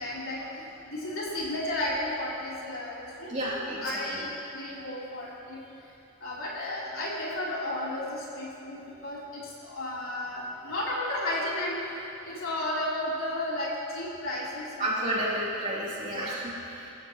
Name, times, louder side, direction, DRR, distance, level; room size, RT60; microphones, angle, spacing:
voice 1, 0.0-5.9 6.2-15.1 16.1-16.3, left 1 dB, 70° left, -7 dB, 4.1 m, -33 dB
voice 2, 3.3-3.8 4.1-4.2 14.8-16.9, right 1 dB, 35° right, -7 dB, 3.6 m, -31 dB
24.5 x 14.0 x 3.2 m, 3.0 s
head